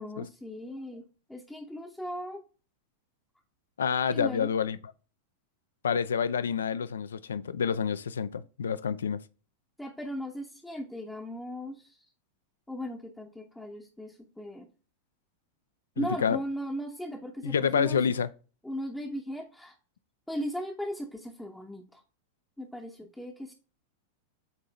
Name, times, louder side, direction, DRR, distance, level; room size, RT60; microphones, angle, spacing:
voice 1, 0.0-2.4 4.1-4.5 9.8-12.1 12.7-14.7 16.0-18.0 18.6-19.8 20.3-22.0 22.6-23.5, equal, 5° left, 0.7 m, -37 dB
voice 2, 3.8-4.8 5.8-9.2 16.0-16.4 17.4-18.3, left 7 dB, 65° left, 0.4 m, -28 dB
8.1 x 2.7 x 4.6 m
figure-of-eight pair, 90°, 0 cm